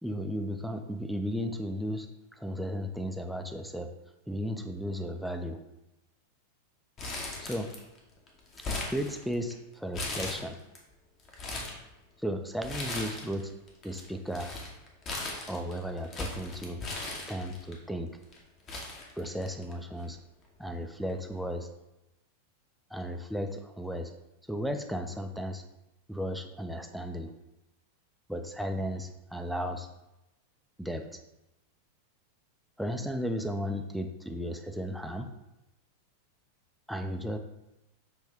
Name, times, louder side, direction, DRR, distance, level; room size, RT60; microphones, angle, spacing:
voice 1, 0.0-3.9 4.3-5.6 7.4-7.7 8.9-10.6 12.2-13.5 13.8-14.5 15.5-16.8 17.3-18.2 19.2-20.2 20.6-21.7 22.9-24.1 24.5-25.6 26.1-27.3 28.3-29.9 30.8-31.2 32.8-35.3 36.9-37.4, equal, ahead, 4 dB, 0.4 m, -35 dB
Crumpling crinkling, 7.0-8.0 8.3-9.5 9.9-10.8 11.2-11.8 12.6-13.4 13.7-17.7 18.3-18.4 18.7-19.7 20.0-20.1 21.1-21.3, left 2 dB, 30° left, 0.8 m, -37 dB
5.9 x 2.6 x 3.4 m, 0.92 s
figure-of-eight pair, 90°, 0 cm